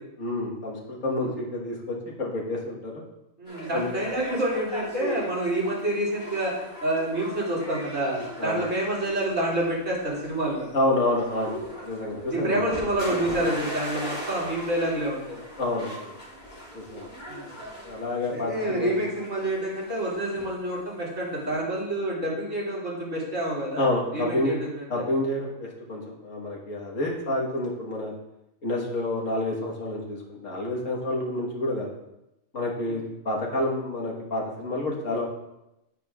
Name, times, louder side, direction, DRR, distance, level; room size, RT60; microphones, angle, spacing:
voice 1, 0.2-3.0 3.7-4.0 8.4-8.6 10.7-11.5 11.8-12.6 15.6-16.1 16.7-17.1 17.8-19.0 23.8-24.6 24.9-28.1 28.6-31.9 32.5-35.2, left 1 dB, 70° left, -2 dB, 1.9 m, -28 dB
voice 2, 3.4-6.5 6.8-10.7 12.3-15.4 17.3-17.5 18.3-23.8 24.1-25.0 27.2-27.3 32.9-33.0, right 1 dB, 65° right, -6 dB, 2.9 m, -28 dB
sound 1, 3.5-21.6, equal, 40° left, 3.1 m, -39 dB
9.1 x 8.9 x 2.4 m, 0.91 s
omnidirectional pair, 1.4 m